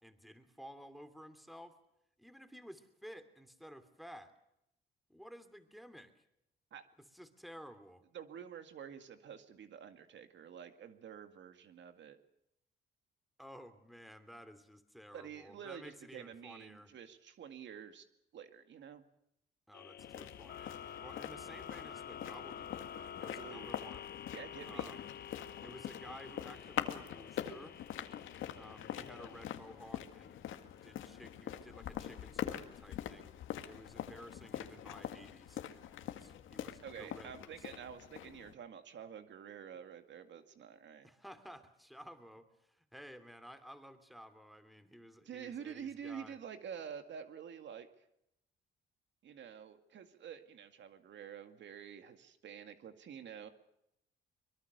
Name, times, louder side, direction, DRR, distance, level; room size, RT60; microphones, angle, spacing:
voice 1, 0.0-1.8 2.2-4.3 5.1-6.2 7.0-8.0 13.4-16.9 19.7-24.1 24.6-25.2 25.6-27.8 28.5-30.5 30.8-33.3 33.6-37.9 41.0-46.4, equal, ahead, 10 dB, 2.9 m, -54 dB
voice 2, 8.1-12.2 15.1-18.1 18.3-19.1 23.4-23.8 24.3-24.9 36.8-41.1 45.3-47.9 49.2-53.5, right 8 dB, 65° right, 8 dB, 2.2 m, -48 dB
sound 1, 19.7-34.0, left 9 dB, 50° left, 1.1 m, -51 dB
sound 2, 20.0-38.5, left 11 dB, 80° left, 2.0 m, -44 dB
23.5 x 22.5 x 6.8 m, 0.80 s
cardioid pair, 90°, 20 cm